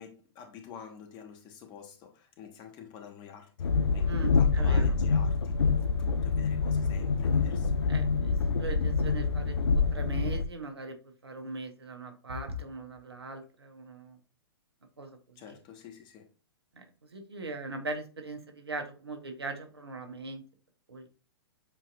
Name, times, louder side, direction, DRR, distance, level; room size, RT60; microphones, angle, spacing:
voice 1, 0.0-3.7 3.9-7.8 15.4-16.3, left 7 dB, 35° left, 1.2 m, -48 dB
Train, 3.6-10.4, left 4 dB, 80° left, 0.4 m, -26 dB
voice 2, 4.1-4.9 7.9-14.2 15.0-15.2 16.7-20.4 20.9-21.1, right 3 dB, 85° right, 1.2 m, -40 dB
7.4 x 2.8 x 2.5 m
figure-of-eight pair, 105°, 13 cm